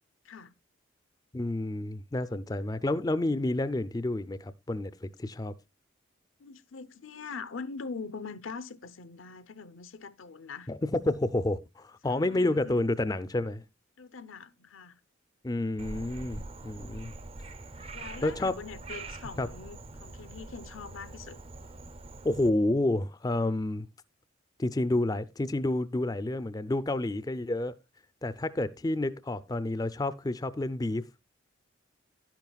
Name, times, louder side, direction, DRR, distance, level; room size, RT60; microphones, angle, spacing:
voice 1, 1.3-5.5 10.7-13.6 15.4-17.1 18.2-18.6 19.4-19.5 22.2-23.9 24.6-27.7 28.2-31.0, left 2 dB, 20° left, 0.4 m, -29 dB
voice 2, 6.4-10.7 12.1-12.9 14.0-15.0 17.7-21.4, left 5 dB, 80° left, 0.7 m, -43 dB
Frog, 15.8-22.5, right 2 dB, 30° right, 0.5 m, -44 dB
11.5 x 10.5 x 2.3 m
head